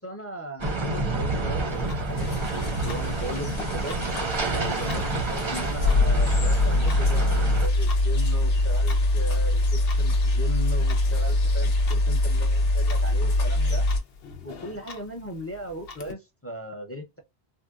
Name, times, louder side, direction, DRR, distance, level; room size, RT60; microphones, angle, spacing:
voice 1, 0.0-4.0 4.5-13.9 14.4-17.2, equal, 15° left, 0.5 m, -38 dB
sound 1, 0.6-7.7, right 2 dB, 35° right, 0.5 m, -29 dB
Clock, 1.7-16.1, left 5 dB, 60° left, 0.9 m, -46 dB
sound 2, 2.2-14.0, left 2 dB, 90° left, 1.2 m, -23 dB
3.6 x 2.1 x 2.3 m
omnidirectional pair, 1.2 m